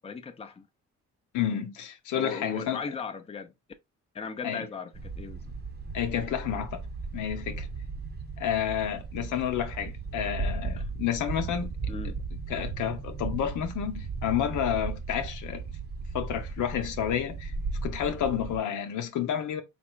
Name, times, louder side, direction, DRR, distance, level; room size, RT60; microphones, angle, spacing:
voice 1, 0.0-0.7 2.1-3.5 4.1-5.5 10.8-10.9 11.9-12.2, left 5 dB, 20° left, 0.6 m, -38 dB
voice 2, 1.3-2.8 4.4-4.7 5.9-6.8 7.1-7.7 8.4-11.7 12.0-15.6 16.1-17.5 17.8-19.6, left 9 dB, 80° left, 0.8 m, -30 dB
sound 1, 4.9-18.6, right 4 dB, 35° right, 0.7 m, -36 dB
4.2 x 3.2 x 2.3 m
cardioid pair, 90°, 30 cm